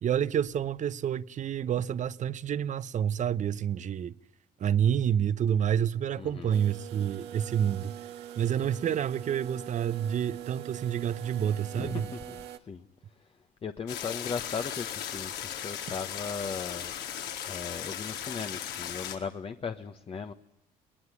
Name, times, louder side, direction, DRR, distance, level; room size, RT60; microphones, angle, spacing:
voice 1, 0.0-4.1 4.6-7.9 8.4-12.1, right 9 dB, 45° right, 0.9 m, -28 dB
voice 2, 6.2-6.6 11.7-12.8 13.6-16.9 17.5-20.3, left 5 dB, 35° left, 1.2 m, -37 dB
sound 1, 6.5-12.6, right 12 dB, 85° right, 1.8 m, -43 dB
sound 2, 13.9-19.2, left 9 dB, 80° left, 4.3 m, -37 dB
21.0 x 20.0 x 9.9 m
cardioid pair, 110°, 17 cm